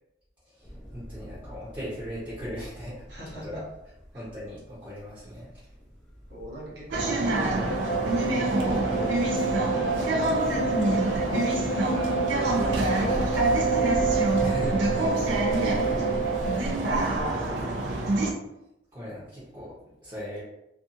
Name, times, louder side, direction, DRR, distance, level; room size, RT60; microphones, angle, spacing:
sound 1, 0.6-17.6, equal, 5° left, 0.7 m, -42 dB
voice 1, 0.9-3.0 3.4-3.6 4.1-5.5 8.9-9.2 14.4-14.8 15.1-15.4 16.5-16.9 18.9-19.7 20.0-20.4, equal, 25° right, -11 dB, 0.8 m, -38 dB
voice 2, 3.1-3.6 4.1-4.3 6.3-14.4 15.2-16.3 16.8-18.3, equal, 60° right, -4 dB, 0.9 m, -42 dB
sound 2, 6.9-18.3, right 2 dB, 90° right, 0.4 m, -26 dB
sound 3, 7.7-16.6, right 4 dB, 85° left, 0.4 m, -29 dB
2.5 x 2.4 x 2.6 m, 0.87 s
head